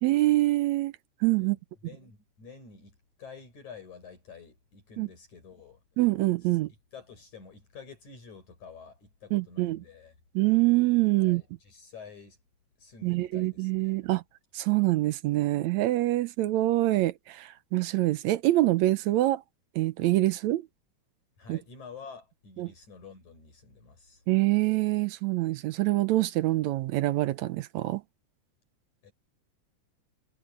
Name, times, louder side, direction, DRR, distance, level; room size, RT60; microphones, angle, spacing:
voice 1, 0.0-0.9 1.2-1.6 5.0-5.1 6.0-6.7 9.3-9.8 10.4-11.4 13.0-14.2 14.5-19.4 19.8-20.6 21.5-21.6 22.6-22.7 24.3-28.0, right 17 dB, 75° right, 1.9 m, -25 dB
voice 2, 1.8-5.8 6.4-6.5 6.9-10.2 11.2-12.4 12.8-13.9 21.4-24.2 29.0-29.1, left 5 dB, 70° left, 7.6 m, -49 dB
omnidirectional pair, 3.4 m